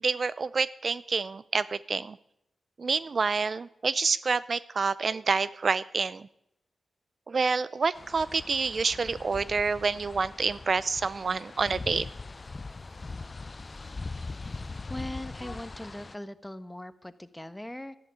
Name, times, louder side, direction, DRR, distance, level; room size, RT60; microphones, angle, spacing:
voice 1, 0.0-2.2 2.8-6.3 7.3-12.1, right 4 dB, 55° right, 18 dB, 0.5 m, -28 dB
sound 1, 7.9-16.1, left 3 dB, 40° left, 0.5 m, -41 dB
voice 2, 14.9-18.0, left 1 dB, 10° left, 12 dB, 1.3 m, -40 dB
13.0 x 11.0 x 9.9 m, 0.80 s
cardioid pair, 50°, 0 cm